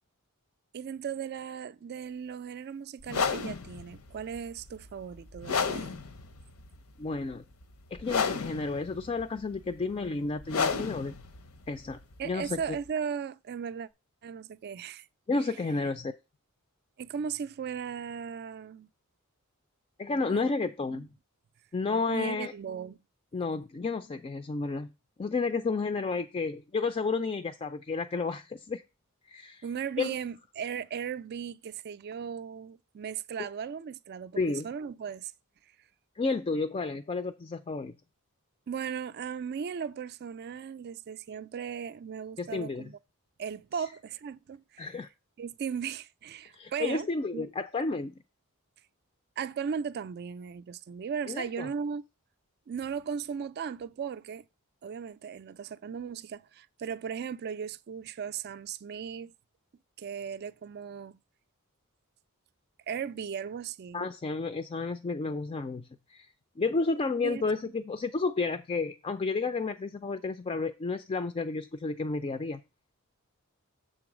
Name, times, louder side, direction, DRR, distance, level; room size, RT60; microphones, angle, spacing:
voice 1, 0.7-6.0 12.2-13.9 14.2-15.1 17.0-18.9 20.1-20.4 20.9-21.0 22.1-23.0 29.6-35.3 38.7-43.0 43.4-44.9 45.4-47.1 47.3-47.5 49.4-52.0 52.7-54.4 54.8-59.3 60.0-61.2 62.9-64.1 67.2-67.4, right 7 dB, 45° right, 0.3 m, -37 dB
sound 1, 3.0-12.9, left 5 dB, 65° left, 0.7 m, -33 dB
voice 2, 7.0-7.4 7.9-11.1 11.7-12.6 15.3-16.1 20.0-21.1 21.7-22.5 23.3-24.9 25.2-28.8 29.3-29.6 30.0-30.2 34.4-34.7 36.2-37.9 42.4-42.9 43.7-43.8 44.8-45.1 46.5-48.2 51.3-51.7 63.9-66.3 66.6-72.6, left 3 dB, 25° left, 0.4 m, -31 dB
6.9 x 3.9 x 6.0 m
head